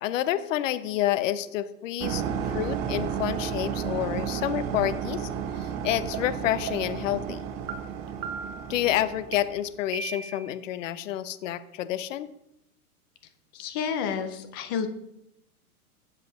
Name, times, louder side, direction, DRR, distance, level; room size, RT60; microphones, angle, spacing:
voice 1, 0.0-5.3 5.6-7.5 8.7-12.3, left 12 dB, 55° left, 14 dB, 0.7 m, -29 dB
sound 1, 2.0-9.6, right 8 dB, 30° right, 0.8 m, -32 dB
sound 2, 6.1-6.2 6.7-7.1 7.7-7.8 8.2-8.7 9.3-9.4 9.9-10.5, right 6 dB, 70° right, 1.5 m, -36 dB
voice 2, 13.5-14.9, left 7 dB, 15° left, 8 dB, 0.3 m, -30 dB
12.5 x 7.5 x 3.1 m, 0.82 s
hypercardioid pair, 125°, 45 cm